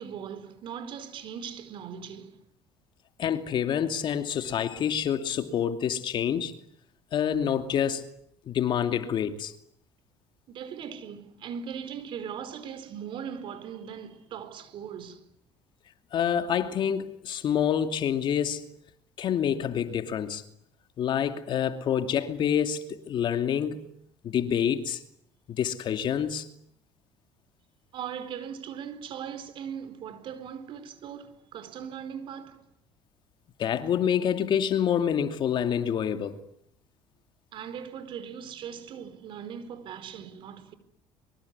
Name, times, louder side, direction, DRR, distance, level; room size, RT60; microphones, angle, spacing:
voice 1, 0.0-2.4 10.5-15.3 27.9-32.7 37.5-40.7, right 8 dB, 60° right, 4.4 m, -39 dB
voice 2, 3.2-6.6 7.1-8.0 8.5-9.5 16.1-18.6 19.2-20.4 21.0-23.8 24.2-25.0 25.5-26.5 33.6-36.4, left 8 dB, 50° left, 2.7 m, -27 dB
25.5 x 24.0 x 9.8 m
supercardioid pair, 95°, 10 cm